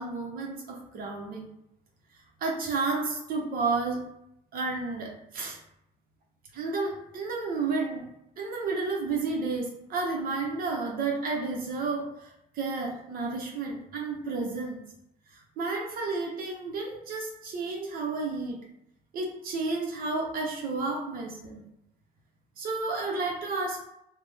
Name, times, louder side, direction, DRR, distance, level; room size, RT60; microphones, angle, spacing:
voice 1, 0.0-1.5 2.4-4.0 4.5-5.6 6.5-8.1 8.4-14.8 15.3-18.6 19.1-21.6 22.6-23.8, right 3 dB, 60° right, 0 dB, 0.8 m, -31 dB
3.5 x 2.1 x 3.3 m, 0.79 s
cardioid pair, 110°, 17 cm